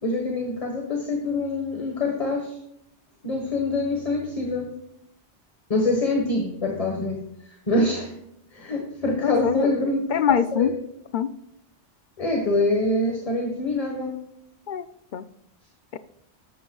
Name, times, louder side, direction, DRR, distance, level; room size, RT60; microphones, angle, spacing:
voice 1, 0.0-2.6 3.2-4.7 5.7-7.2 7.7-8.1 8.5-10.1 10.5-10.7 12.2-14.2, left 2 dB, 30° left, 2 dB, 1.5 m, -25 dB
voice 2, 9.2-10.7 11.1-11.3 14.7-14.9 15.1-15.3 15.9-16.0, left 8 dB, 55° left, 12 dB, 0.6 m, -24 dB
13.0 x 12.5 x 2.4 m, 0.78 s
omnidirectional pair, 1.2 m